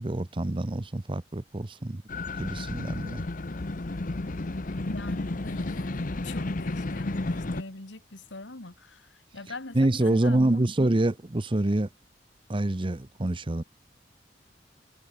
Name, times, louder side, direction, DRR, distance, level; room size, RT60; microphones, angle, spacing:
voice 1, 0.0-2.0 2.4-3.2 9.7-11.9 12.5-13.6, right 1 dB, 30° right, 0.8 m, -26 dB
sound 1, 2.1-7.6, left 2 dB, 45° left, 0.9 m, -32 dB
voice 2, 4.9-10.7, left 2 dB, 80° left, 2.2 m, -41 dB
head